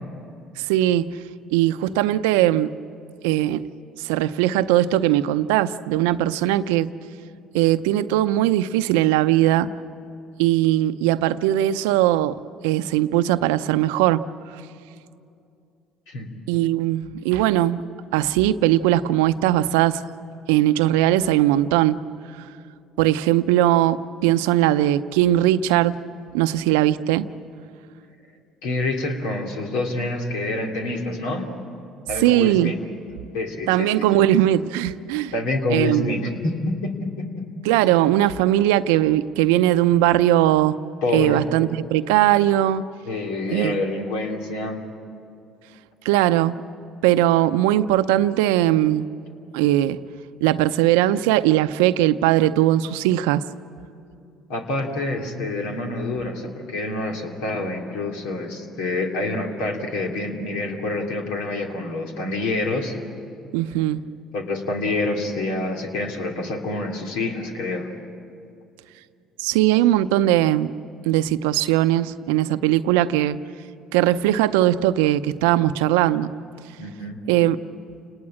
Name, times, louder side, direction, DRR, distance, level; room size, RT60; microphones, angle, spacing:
voice 1, 0.6-1.2 1.5-2.7 3.2-3.7 4.0-6.9 7.5-9.7 10.4-12.4 12.6-14.2 16.5-17.8 18.1-20.0 20.5-22.0 23.0-26.0 26.3-27.3 32.2-32.7 33.7-35.3 35.7-36.2 37.6-40.8 41.1-42.8 43.5-43.8 46.0-46.6 47.0-49.1 49.5-50.0 50.4-53.4 63.5-64.0 69.4-70.7 71.1-73.4 73.9-76.3 77.3-77.6, right 13 dB, 85° right, 13 dB, 0.6 m, -19 dB
voice 2, 28.6-31.5 32.1-32.8 33.3-33.9 35.3-36.9 37.2-37.3 41.0-41.4 43.0-44.8 54.5-63.0 64.3-67.9 76.8-77.2, left 2 dB, 80° left, 2 dB, 3.0 m, -27 dB
29.0 x 19.5 x 8.6 m, 2.5 s
supercardioid pair, 70°, 0 cm